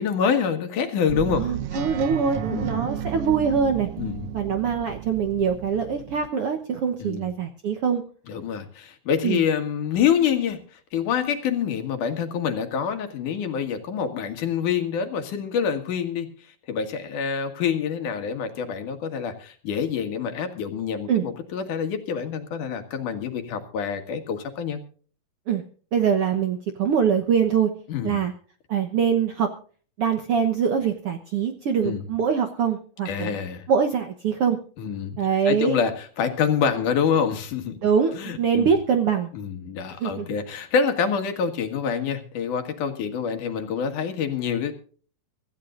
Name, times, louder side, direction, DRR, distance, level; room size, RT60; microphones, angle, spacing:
voice 1, 0.0-1.5 1.7-1.8 2.5-2.9 4.0-4.3 7.0-7.3 8.3-16.3 16.7-24.8 27.9-28.2 31.8-32.1 33.1-33.6 34.8-35.2 35.5-37.8 38.1-38.7 39.3-44.7, left 7 dB, 65° left, 7 dB, 3.1 m, -26 dB
sound 1, 1.1-6.3, right 11 dB, 85° right, 1.3 m, -33 dB
voice 2, 1.4-3.9 4.3-8.0 9.2-9.4 21.1-21.2 25.5-25.6 25.9-27.7 28.0-28.3 28.7-29.5 30.0-33.3 33.7-34.6 35.2-35.8 37.8-39.3 40.0-40.3, right 7 dB, 60° right, 6 dB, 1.5 m, -23 dB
24.5 x 14.0 x 2.5 m, 0.42 s
omnidirectional pair, 3.9 m